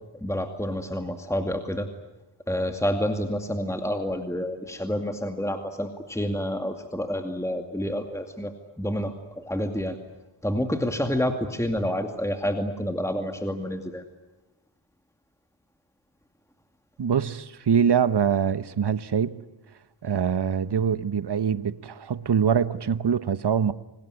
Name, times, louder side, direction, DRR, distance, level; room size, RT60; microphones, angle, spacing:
voice 1, 0.1-1.9 2.5-10.0 10.4-14.0, equal, 5° left, 2.3 m, -28 dB
voice 2, 17.0-19.4 20.0-23.7, right 7 dB, 55° right, 1.0 m, -24 dB
27.0 x 19.5 x 9.6 m
cardioid pair, 50°, 47 cm